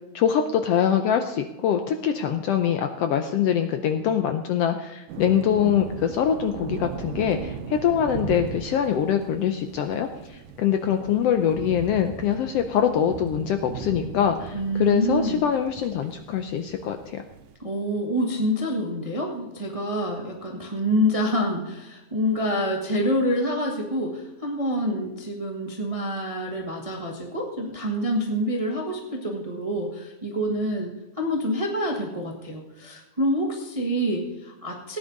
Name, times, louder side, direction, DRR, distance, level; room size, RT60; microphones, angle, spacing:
voice 1, 0.1-17.2, left 8 dB, 75° left, 7 dB, 1.5 m, -24 dB
sound 1, 5.1-17.5, right 6 dB, 85° right, 2.3 m, -38 dB
voice 2, 14.5-15.4 17.6-30.9 31.2-35.0, equal, 20° right, 0 dB, 0.9 m, -27 dB
17.0 x 9.8 x 4.0 m, 1.0 s
omnidirectional pair, 3.3 m